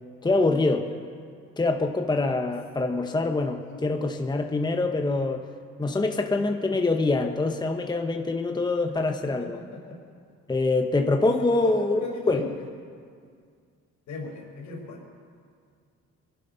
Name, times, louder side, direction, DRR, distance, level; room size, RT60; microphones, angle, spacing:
voice 1, 0.2-0.9 1.6-5.4 5.8-9.6 10.5-12.0 12.3-12.5, left 2 dB, 15° left, 5 dB, 0.9 m, -25 dB
voice 2, 9.4-10.0 11.4-12.6 14.1-15.0, left 3 dB, 75° left, 1 dB, 4.6 m, -36 dB
22.0 x 11.5 x 5.5 m, 2.2 s
cardioid pair, 90°, 30 cm